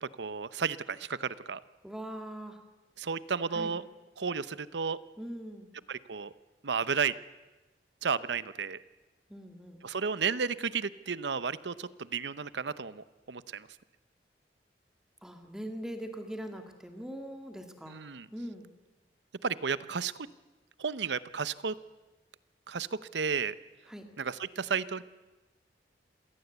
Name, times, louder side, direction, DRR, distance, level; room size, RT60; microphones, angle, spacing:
voice 1, 0.0-1.6 3.0-3.8 4.2-5.0 5.9-6.3 6.6-7.1 8.0-8.8 9.8-13.7 17.9-18.3 19.4-20.1 20.8-21.8 22.7-23.6 24.2-25.0, right 5 dB, 80° right, 16 dB, 0.8 m, -33 dB
voice 2, 1.8-2.6 3.5-3.7 5.2-5.7 9.3-9.8 15.2-18.0 18.3-18.7 23.9-24.1, equal, 5° right, 4 dB, 2.2 m, -41 dB
26.5 x 18.0 x 8.1 m, 1.2 s
head